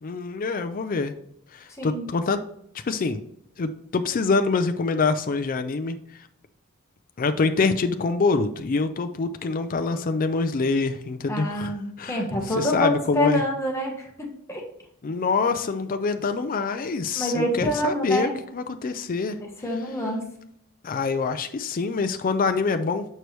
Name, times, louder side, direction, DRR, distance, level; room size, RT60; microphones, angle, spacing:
voice 1, 0.0-1.1 1.5-2.4 2.9-3.2 3.6-6.0 7.2-11.7 12.0-12.2 12.6-13.4 15.0-19.4 20.8-23.1, left 4 dB, 40° left, 8 dB, 0.4 m, -25 dB
voice 2, 11.3-14.6 17.2-18.4 19.4-20.2, left 1 dB, 15° left, 0 dB, 1.3 m, -26 dB
6.6 x 4.6 x 3.1 m, 0.72 s
head